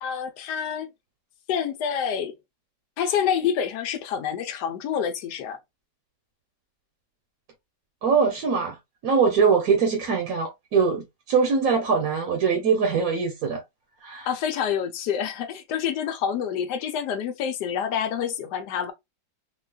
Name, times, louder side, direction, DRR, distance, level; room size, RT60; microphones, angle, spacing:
voice 1, 0.0-0.9 1.5-2.4 3.0-5.6 14.2-18.9, left 8 dB, 75° left, 1.2 m, -27 dB
voice 2, 8.0-8.8 9.0-13.6 14.0-14.3, right 5 dB, 60° right, 1.2 m, -22 dB
3.8 x 2.3 x 2.2 m
omnidirectional pair, 1.9 m